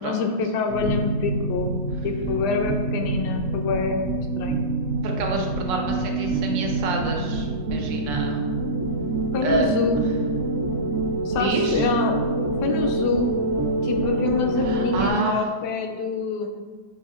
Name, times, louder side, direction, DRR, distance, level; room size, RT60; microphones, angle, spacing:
voice 1, 0.0-1.7 2.0-4.0 4.4-4.6 9.3-10.0 11.2-12.2 12.6-13.3 13.8-16.5, left 4 dB, 75° left, 4 dB, 1.0 m, -26 dB
sound 1, 0.7-15.1, right 2 dB, 70° right, 0.7 m, -26 dB
voice 2, 5.0-8.4 9.4-9.7 11.4-11.9 14.6-15.4, right 3 dB, 85° right, 1 dB, 1.4 m, -28 dB
6.9 x 2.6 x 2.4 m, 1.5 s
omnidirectional pair, 2.0 m